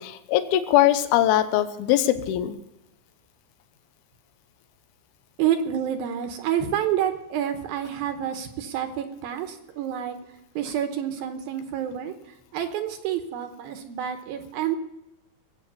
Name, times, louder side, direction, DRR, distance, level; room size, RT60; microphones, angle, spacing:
voice 1, 0.0-2.6, left 13 dB, 75° left, 11 dB, 2.7 m, -21 dB
voice 2, 5.4-10.2 10.6-12.1 12.5-14.8, right 10 dB, 70° right, 7 dB, 2.6 m, -28 dB
20.0 x 8.1 x 6.9 m, 0.89 s
omnidirectional pair, 4.8 m